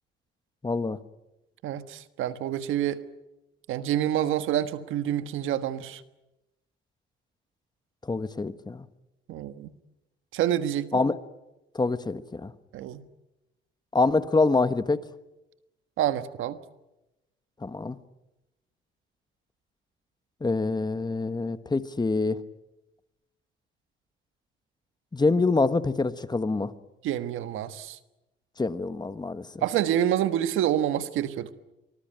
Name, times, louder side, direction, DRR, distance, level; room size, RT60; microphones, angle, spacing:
voice 1, 0.6-1.0 8.1-8.8 10.9-11.2 11.7-12.5 13.9-15.0 17.6-18.0 20.4-22.4 25.1-26.7 28.6-29.6, left 3 dB, 20° left, 12 dB, 1.3 m, -25 dB
voice 2, 1.6-3.0 3.7-6.0 9.3-9.7 10.3-11.0 12.7-13.0 16.0-16.6 27.0-28.0 29.6-31.5, right 11 dB, 90° right, 11 dB, 1.4 m, -27 dB
25.5 x 20.0 x 9.0 m, 0.96 s
cardioid pair, 90°, 20 cm